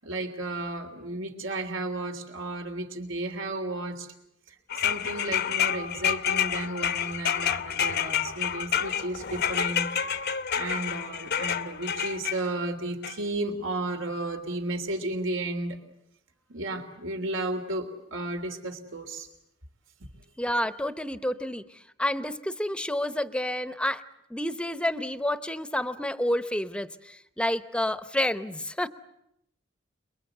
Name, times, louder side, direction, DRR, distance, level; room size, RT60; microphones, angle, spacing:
voice 1, 0.0-4.1 4.5-9.9 10.6-15.8 16.5-19.3, right 2 dB, 75° right, 6 dB, 3.3 m, -33 dB
sound 1, 4.7-12.4 13.0-13.1, left 9 dB, 55° left, 0.9 m, -28 dB
voice 2, 20.4-24.0 24.3-28.9, left 1 dB, 5° left, 12 dB, 0.9 m, -29 dB
28.5 x 22.5 x 8.0 m, 0.80 s
head